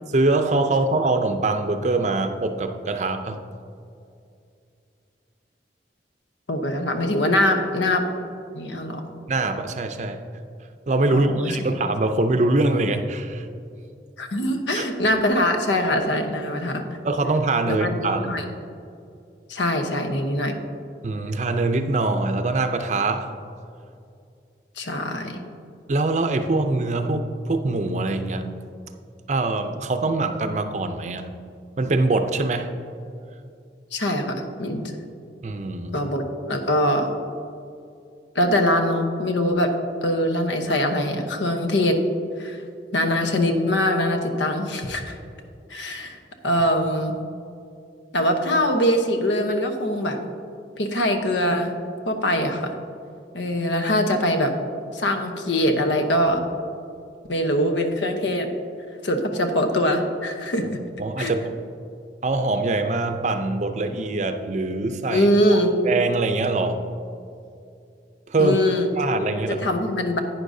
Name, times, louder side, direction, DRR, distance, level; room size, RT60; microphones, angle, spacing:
voice 1, 0.1-3.4 9.3-10.2 10.9-13.5 14.7-14.8 17.0-18.4 21.0-23.3 25.9-28.5 29.3-31.3 31.8-32.7 35.4-36.1 61.0-61.5 62.2-66.8 68.3-68.6 69.0-69.6, right 2 dB, 40° right, 7 dB, 0.5 m, -23 dB
voice 2, 6.5-8.0 8.5-9.1 11.1-11.7 14.2-16.8 17.7-18.5 19.5-20.6 24.8-25.4 33.9-34.9 35.9-37.1 38.3-39.7 40.0-42.0 42.4-42.6 42.9-45.2 45.7-46.2 46.4-47.1 48.1-50.2 50.8-51.7 52.1-52.7 53.3-54.5 54.9-56.4 57.3-58.5 59.0-60.8 61.2-61.3 65.1-65.7 68.4-68.9 69.4-70.2, left 1 dB, 85° left, 5 dB, 0.9 m, -23 dB
11.0 x 9.2 x 2.7 m, 2.5 s
head